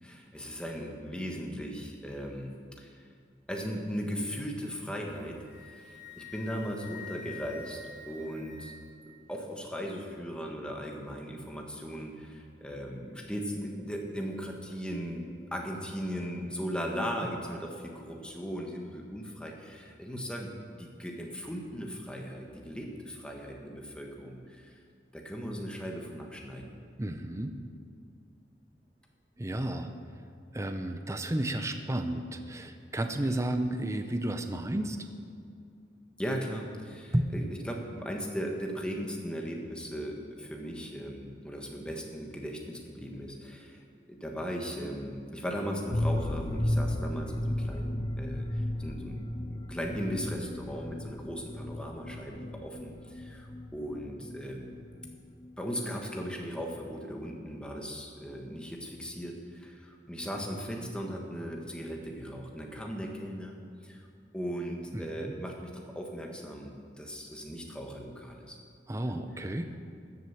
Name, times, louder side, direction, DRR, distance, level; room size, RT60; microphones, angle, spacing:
voice 1, 0.0-2.5 2.8-3.0 3.5-5.4 5.6-7.8 8.1-8.7 9.1-15.2 15.5-20.5 20.8-24.8 25.1-26.8 33.2-33.4 36.2-43.8 44.1-54.7 55.6-64.1 64.3-68.6 69.1-69.2, equal, 5° left, 0 dB, 1.5 m, -38 dB
Wind instrument woodwind instrument, 5.2-9.0, left 5 dB, 45° right, 2.8 m, -47 dB
voice 2, 27.0-27.5 29.4-29.9 30.5-35.0 37.1-37.3 55.0-55.1 64.9-65.3 68.9-69.7, right 1 dB, 15° right, 7 dB, 0.7 m, -32 dB
sound 1, 45.9-55.5 55.8-55.9 56.2-56.3, left 1 dB, 20° left, 0.4 m, -34 dB
13.5 x 7.9 x 7.2 m, 2.4 s
head